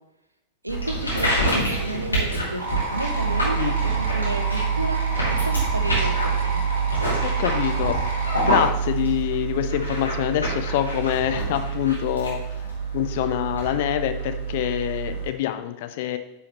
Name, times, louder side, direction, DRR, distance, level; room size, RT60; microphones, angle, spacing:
voice 1, 0.6-5.0 5.3-6.6, right 1 dB, 85° right, 5 dB, 0.8 m, -32 dB
sound 1, 0.7-15.3, right 4 dB, 85° left, 2.6 m, -26 dB
sound 2, 2.6-8.7, right 2 dB, 55° right, 1.8 m, -31 dB
voice 2, 7.2-16.2, left 12 dB, 50° left, 9 dB, 0.6 m, -26 dB
10.0 x 4.9 x 3.3 m, 0.93 s
figure-of-eight pair, 90°, 0 cm